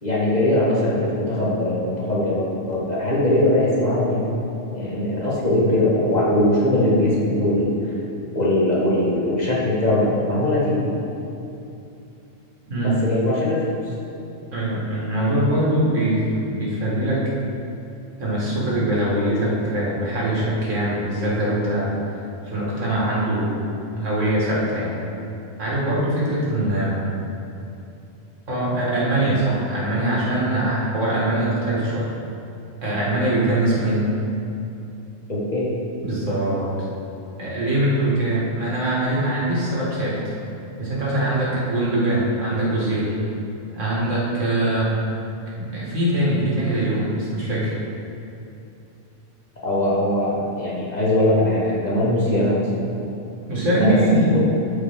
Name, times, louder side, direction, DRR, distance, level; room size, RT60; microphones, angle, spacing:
voice 1, 0.0-4.4 4.7-7.7 8.3-10.9 12.8-13.6 35.3-35.7 49.6-52.9 53.7-54.4, left 1 dB, 35° left, -7 dB, 1.8 m, -21 dB
voice 2, 12.7-13.0 14.5-17.2 18.2-21.9 22.4-23.5 24.0-24.9 25.6-27.0 28.5-32.1 32.8-34.0 36.0-36.7 37.4-40.2 40.8-43.1 43.7-45.0 45.6-47.8 53.5-54.4, right 1 dB, 75° right, -6 dB, 2.3 m, -22 dB
13.5 x 5.0 x 3.6 m, 2.8 s
omnidirectional pair, 1.3 m